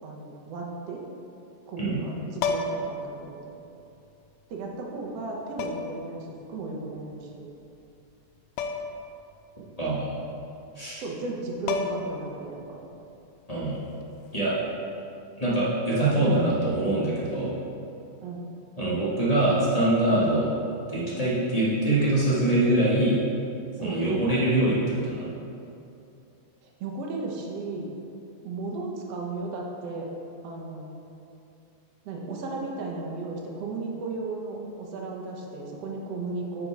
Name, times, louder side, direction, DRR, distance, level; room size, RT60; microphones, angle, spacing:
voice 1, 0.0-1.0 1.7-3.5 4.5-7.5 11.0-12.8 18.2-18.5 23.8-24.1 26.6-27.9 28.4-30.1 30.4-30.9 32.1-36.7, right 3 dB, 65° right, -1 dB, 1.9 m, -35 dB
sound 1, 2.4-3.0 4.3-4.4 5.6-6.0 8.6-9.0 9.3-9.4 11.3-11.4 11.7-12.3 14.2-14.4, left 4 dB, 80° left, 1.7 m, -30 dB
voice 2, 9.8-10.1 10.7-11.0 13.5-13.8 14.3-14.5 15.4-17.5 18.8-20.5 20.9-23.2 23.8-25.3, right 1 dB, 25° left, -8 dB, 0.8 m, -24 dB
9.4 x 5.3 x 4.7 m, 2.7 s
omnidirectional pair, 3.3 m